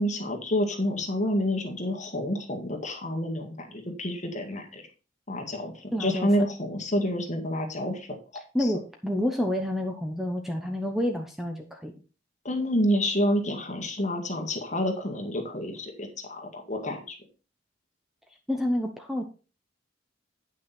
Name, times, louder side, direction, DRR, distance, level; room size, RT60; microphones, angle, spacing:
voice 1, 0.0-4.8 5.3-8.7 12.4-17.2, equal, 40° left, 2 dB, 1.9 m, -29 dB
voice 2, 5.9-6.3 8.5-11.9 18.5-19.2, left 1 dB, ahead, 3 dB, 0.8 m, -28 dB
9.2 x 6.2 x 4.3 m, 0.34 s
head